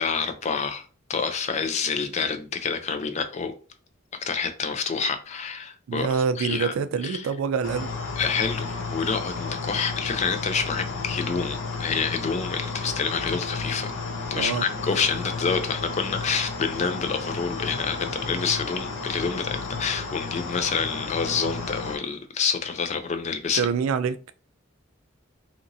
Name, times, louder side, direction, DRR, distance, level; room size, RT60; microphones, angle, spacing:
voice 1, 0.0-3.5 4.2-6.7 7.0-7.3 8.2-13.9 14.3-23.7, left 5 dB, 35° left, 0.3 m, -28 dB
voice 2, 5.9-7.9 14.4-14.6 23.5-24.3, right 6 dB, 85° right, 0.3 m, -26 dB
sound 1, 7.6-22.0, left 4 dB, 75° left, 0.7 m, -32 dB
2.9 x 2.5 x 2.6 m
head